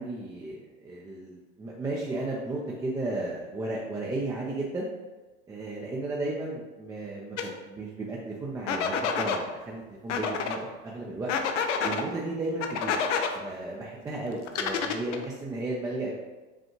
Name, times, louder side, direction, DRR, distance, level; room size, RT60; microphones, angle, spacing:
voice 1, 0.0-4.9 5.5-11.3 11.8-13.0 13.3-16.1, right 2 dB, 10° right, -4 dB, 0.4 m, -34 dB
sound 1, 7.4-7.5 8.7-9.4 10.1-10.6 11.3-12.0 12.6-13.3 14.5-15.3, left 6 dB, 85° left, 0.6 m, -28 dB
5.2 x 2.3 x 3.0 m, 1.2 s
hypercardioid pair, 105°, 36 cm